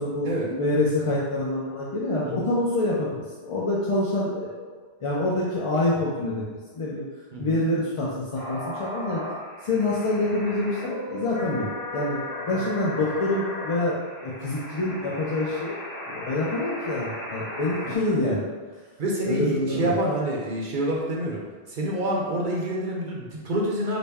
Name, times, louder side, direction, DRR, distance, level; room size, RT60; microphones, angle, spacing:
voice 1, 0.0-6.5 6.8-7.0 7.4-9.2 9.6-15.8 16.1-18.5 19.3-19.9, left 2 dB, 45° left, -6 dB, 0.4 m, -26 dB
voice 2, 7.3-7.6 12.5-12.7 17.7-18.4 19.0-21.4 21.7-24.0, right 1 dB, 55° right, -3 dB, 0.7 m, -28 dB
sound 1, 8.3-18.0, left 1 dB, 80° left, 1.4 m, -36 dB
4.0 x 2.1 x 3.4 m, 1.5 s
omnidirectional pair, 1.1 m